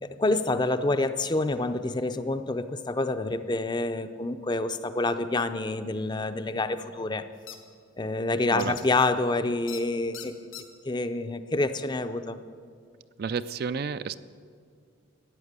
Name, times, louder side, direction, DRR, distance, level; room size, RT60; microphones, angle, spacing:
voice 1, 0.0-7.2 8.0-10.3 10.9-12.4, left 2 dB, 20° left, 10 dB, 0.5 m, -27 dB
sound 1, 7.5-7.6 8.6-8.8 9.7-9.8 10.1-10.6, left 11 dB, 80° left, 1.3 m, -40 dB
voice 2, 8.5-8.8 13.2-14.2, right 5 dB, 50° right, 14 dB, 0.4 m, -31 dB
14.0 x 9.4 x 8.2 m, 2.1 s
head